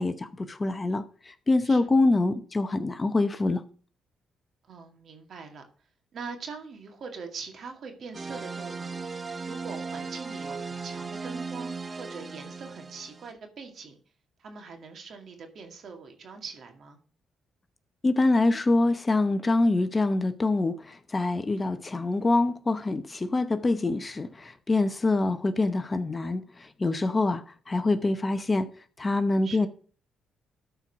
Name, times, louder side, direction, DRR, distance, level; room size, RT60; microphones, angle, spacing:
voice 1, 0.0-3.6 18.0-28.7 29.0-29.7, left 2 dB, 25° left, 0.7 m, -25 dB
voice 2, 4.7-5.6 6.1-8.9 9.4-14.0 14.4-17.0 29.4-29.7, right 5 dB, 60° right, 2.2 m, -42 dB
sound 1, 8.1-13.3, right 4 dB, 30° right, 0.7 m, -37 dB
13.0 x 4.5 x 5.8 m
cardioid pair, 90°, 0 cm